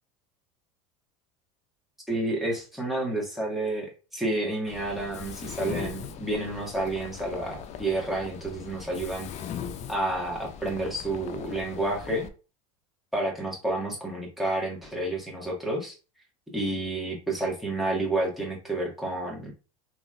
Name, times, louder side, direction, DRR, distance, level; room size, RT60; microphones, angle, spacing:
voice 1, 2.1-9.3 9.9-12.3 13.1-16.0 16.5-19.5, right 2 dB, ahead, -3 dB, 1.7 m, -30 dB
Mechanisms, 4.7-12.3, left 8 dB, 40° left, 0.5 m, -40 dB
3.8 x 3.1 x 2.5 m, 0.33 s
hypercardioid pair, 85°, 17 cm